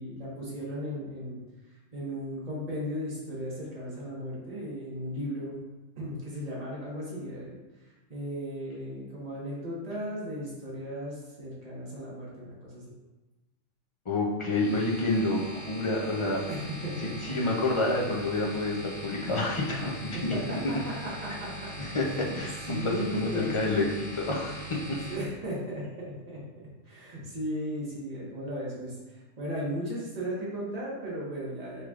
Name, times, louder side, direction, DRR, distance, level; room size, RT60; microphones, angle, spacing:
voice 1, 0.0-1.4 1.9-5.6 6.0-7.5 8.1-12.9 16.5-17.3 20.3-20.8 21.0-21.7 22.3-23.5 25.1-26.4 26.8-31.8, equal, 30° right, -6 dB, 1.3 m, -36 dB
voice 2, 14.1-16.4 17.0-20.4 21.8-25.0, left 2 dB, 50° left, -2 dB, 0.3 m, -29 dB
sound 1, 14.5-25.1, right 1 dB, 80° left, 1.4 m, -41 dB
6.3 x 3.1 x 2.4 m, 1.2 s
omnidirectional pair, 1.3 m